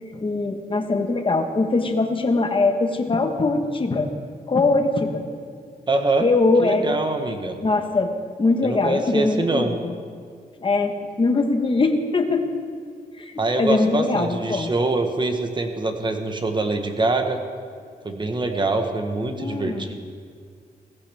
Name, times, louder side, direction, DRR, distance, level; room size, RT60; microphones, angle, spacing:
voice 1, 0.1-4.1 4.5-5.3 6.2-7.0 7.6-8.1 8.4-9.9 10.6-12.5 13.2-14.7 19.3-20.0, left 3 dB, 35° left, 5 dB, 1.3 m, -22 dB
voice 2, 5.9-6.3 6.6-7.6 8.6-9.7 13.4-17.4 18.0-20.0, right 2 dB, 30° right, 5 dB, 1.3 m, -24 dB
16.5 x 15.5 x 3.5 m, 2.1 s
wide cardioid pair, 120°, 16 cm